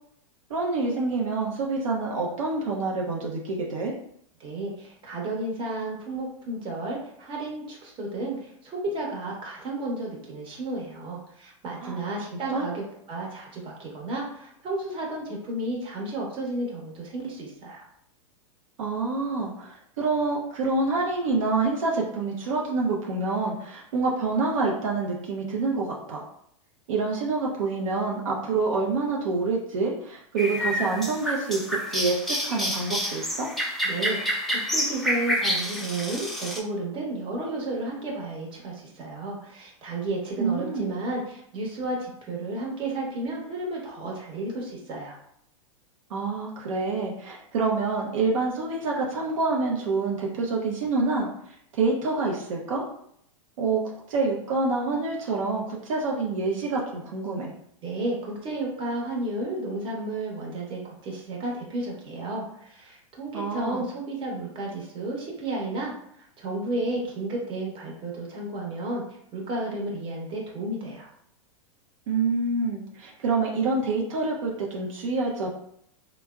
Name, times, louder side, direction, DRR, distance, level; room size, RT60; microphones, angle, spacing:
voice 1, 0.5-3.9 11.8-12.0 12.5-12.7 18.8-26.2 26.9-33.5 40.4-40.9 46.1-52.8 53.6-53.8 54.1-57.5 63.3-63.8 72.1-75.5, right 3 dB, 75° right, -2 dB, 0.6 m, -27 dB
voice 2, 4.4-17.9 33.8-45.1 57.8-71.1, right 2 dB, 30° right, -2 dB, 0.9 m, -32 dB
sound 1, 30.4-36.6, equal, ahead, 0.6 m, -28 dB
3.3 x 2.0 x 2.3 m, 0.71 s
hypercardioid pair, 115°, 17 cm